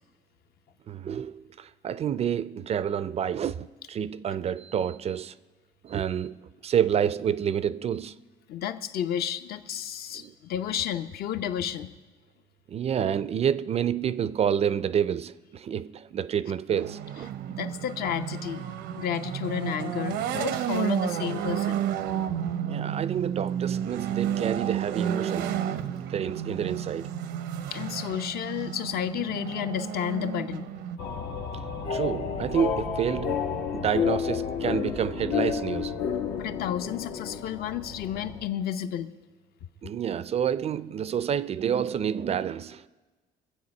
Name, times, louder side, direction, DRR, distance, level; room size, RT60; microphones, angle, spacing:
voice 1, 0.9-5.4 5.8-8.2 10.1-10.3 12.7-17.3 22.6-25.5 26.1-27.1 31.9-36.0 39.8-42.9, right 8 dB, 40° right, 0.4 m, -29 dB
voice 2, 8.5-11.9 17.5-21.8 27.7-30.7 36.3-39.1, left 9 dB, 65° left, 0.7 m, -32 dB
sound 1, 16.7-31.0, right 10 dB, 80° right, 0.7 m, -31 dB
sound 2, 31.0-38.5, left 6 dB, 85° left, 1.2 m, -30 dB
22.5 x 7.9 x 5.3 m
cardioid pair, 110°, 17 cm